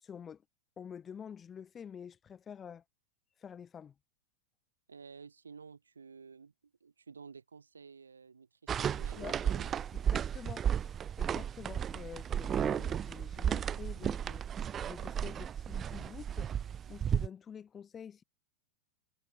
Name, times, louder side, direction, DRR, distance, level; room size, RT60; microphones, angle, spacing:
voice 1, 0.0-0.4 0.8-2.8 3.4-3.9 9.2-9.4 9.9-16.5 16.9-18.2, left 7 dB, 20° left, 3.5 m, -48 dB
voice 2, 4.9-6.5 6.8-9.9, right 5 dB, 75° right, 3.2 m, -53 dB
sound 1, 8.7-17.3, right 9 dB, 25° right, 1.1 m, -34 dB
figure-of-eight pair, 90°, 0 cm